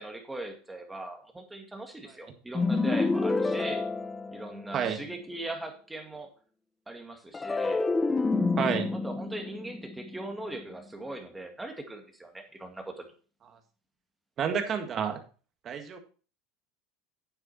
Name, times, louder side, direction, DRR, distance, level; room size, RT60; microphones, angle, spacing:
voice 1, 0.0-3.9 4.3-6.3 6.9-7.9 8.9-13.1, right 2 dB, 10° right, 4 dB, 2.1 m, -40 dB
sound 1, 2.5-4.9 7.3-10.7, left 3 dB, 15° left, 0.5 m, -29 dB
voice 2, 8.6-8.9 14.4-15.2 15.7-16.0, right 7 dB, 40° right, 6 dB, 1.8 m, -29 dB
9.2 x 7.9 x 4.2 m, 0.39 s
supercardioid pair, 110°, 0 cm